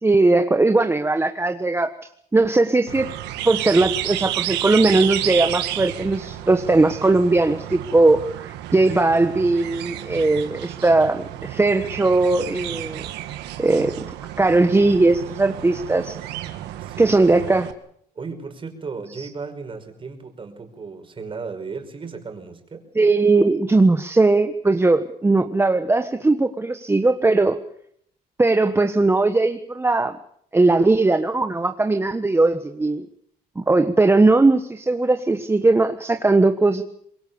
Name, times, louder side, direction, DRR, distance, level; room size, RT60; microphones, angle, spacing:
voice 1, 0.0-1.9 2.3-3.1 3.4-13.0 13.6-13.9 14.4-16.2 17.0-17.7 19.2-19.3 22.9-27.6 28.4-30.1 30.5-33.1 33.6-36.8, right 2 dB, 15° right, 7 dB, 1.3 m, -19 dB
sound 1, 2.9-17.7, right 13 dB, 90° right, 1.9 m, -31 dB
voice 2, 16.8-17.2 18.1-22.9, right 4 dB, 30° right, 6 dB, 5.2 m, -35 dB
24.5 x 22.0 x 7.1 m, 0.68 s
cardioid pair, 110°, 17 cm